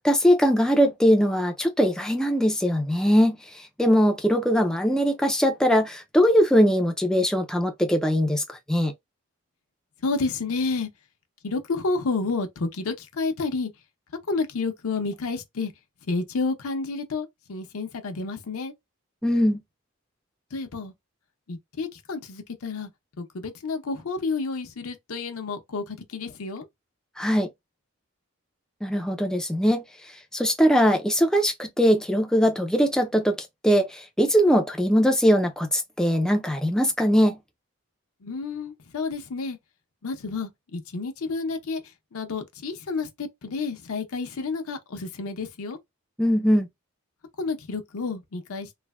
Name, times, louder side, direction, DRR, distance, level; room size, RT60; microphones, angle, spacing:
voice 1, 0.0-8.9 19.2-19.6 27.2-27.5 28.8-29.8 30.3-37.4 46.2-46.7, equal, 5° left, 0.3 m, -21 dB
voice 2, 10.0-10.9 11.4-13.7 14.3-15.7 16.1-18.7 20.5-20.9 21.5-22.9 23.2-26.6 38.2-39.6 40.0-41.8 42.1-45.8 47.4-48.7, left 3 dB, 80° left, 0.6 m, -30 dB
3.2 x 2.0 x 2.3 m
head